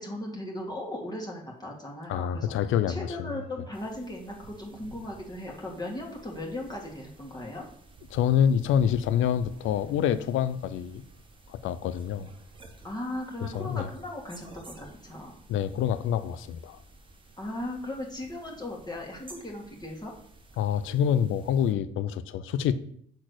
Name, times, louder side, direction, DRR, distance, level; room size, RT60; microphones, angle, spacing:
voice 1, 0.0-7.7 12.8-15.3 17.4-20.1, left 1 dB, 20° left, -2 dB, 1.8 m, -37 dB
sound 1, 0.8-1.0 1.4-1.5 1.8-11.3 12.0-13.4 14.1-14.2 14.4-14.5 16.2-16.3 16.9-17.1 17.6-18.9, right 5 dB, 80° right, 0.9 m, -54 dB
voice 2, 2.1-3.3 8.1-11.0 11.5-12.3 13.4-13.9 15.5-16.8 20.6-22.7, left 9 dB, 85° left, 13 dB, 0.5 m, -26 dB
sound 2, 3.7-21.7, right 2 dB, 25° right, 1.3 m, -54 dB
6.5 x 4.0 x 6.3 m, 0.64 s
cardioid pair, 90°, 20 cm